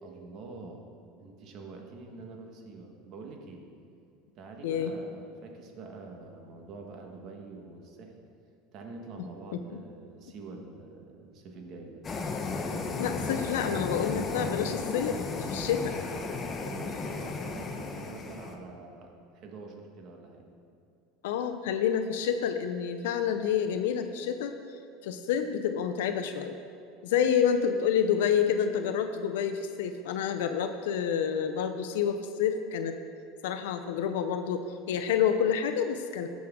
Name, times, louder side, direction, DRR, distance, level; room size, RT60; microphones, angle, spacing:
voice 1, 0.0-0.9 1.2-3.7 4.3-8.3 8.7-12.1 16.5-20.5, right 3 dB, 45° right, 2 dB, 1.3 m, -46 dB
Simulated jet engine burner, 12.0-18.6, left 4 dB, 25° left, 0.8 m, -34 dB
voice 2, 13.0-15.9 21.2-24.6 25.0-26.5 27.0-32.9 33.4-34.6 34.9-36.3, left 8 dB, 85° left, 7 dB, 0.5 m, -28 dB
15.5 x 6.2 x 3.7 m, 2.5 s
supercardioid pair, 135°, 0 cm